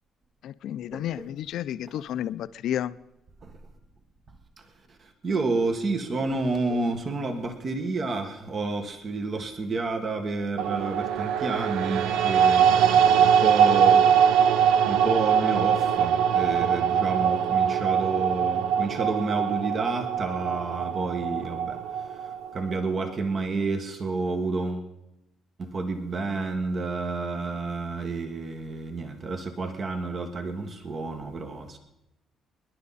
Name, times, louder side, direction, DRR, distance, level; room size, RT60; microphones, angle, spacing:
voice 1, 0.4-3.0, left 11 dB, 70° left, 14 dB, 0.5 m, -31 dB
voice 2, 5.2-14.0 14.8-21.8 22.5-24.9 25.6-31.8, right 3 dB, 40° right, 6 dB, 1.5 m, -30 dB
sound 1, 10.6-22.8, right 8 dB, 85° right, 0.6 m, -22 dB
26.0 x 11.0 x 4.2 m, 0.89 s
cardioid pair, 115°, 0 cm